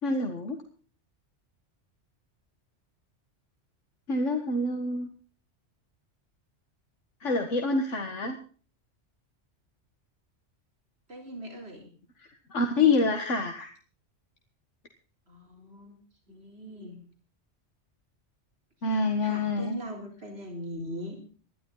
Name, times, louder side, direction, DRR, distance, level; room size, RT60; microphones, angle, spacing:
voice 1, 0.0-0.6 4.1-5.1 7.2-8.4 12.2-13.7 18.8-19.8, left 3 dB, 90° left, 5 dB, 2.1 m, -27 dB
voice 2, 11.1-11.9 15.3-16.0 16.3-17.0 19.2-21.2, right 1 dB, 60° right, 1 dB, 4.2 m, -40 dB
21.0 x 12.5 x 4.0 m, 0.42 s
omnidirectional pair, 1.2 m